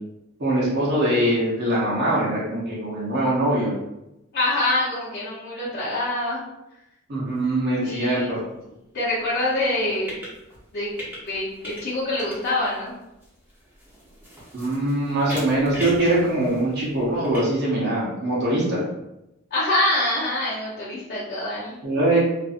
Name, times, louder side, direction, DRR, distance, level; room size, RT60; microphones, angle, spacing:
voice 1, 0.4-3.7 7.1-8.4 14.5-18.8 21.8-22.2, right 1 dB, 55° right, -7 dB, 0.8 m, -22 dB
voice 2, 4.3-6.4 7.8-8.3 8.9-10.2 10.7-10.9 11.2-12.9 19.5-21.7, left 1 dB, 50° left, -9 dB, 0.7 m, -25 dB
sound 1, 7.3-7.4 7.8-7.9 9.6-10.6 10.9-11.9 12.2-17.4, equal, 10° right, 0.8 m, -39 dB
2.6 x 2.5 x 2.5 m, 0.90 s
head